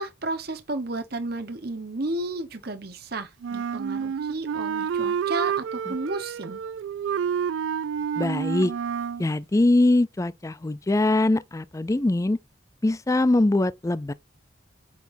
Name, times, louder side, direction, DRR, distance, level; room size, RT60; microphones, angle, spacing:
voice 1, 0.0-6.6, right 2 dB, 50° right, 1.1 m, -32 dB
Wind instrument woodwind instrument, 3.4-9.3, right 7 dB, 70° right, 0.3 m, -29 dB
voice 2, 8.2-8.7 9.2-12.4 12.8-14.1, left 2 dB, 15° left, 0.4 m, -22 dB
8.4 x 6.0 x 2.7 m
head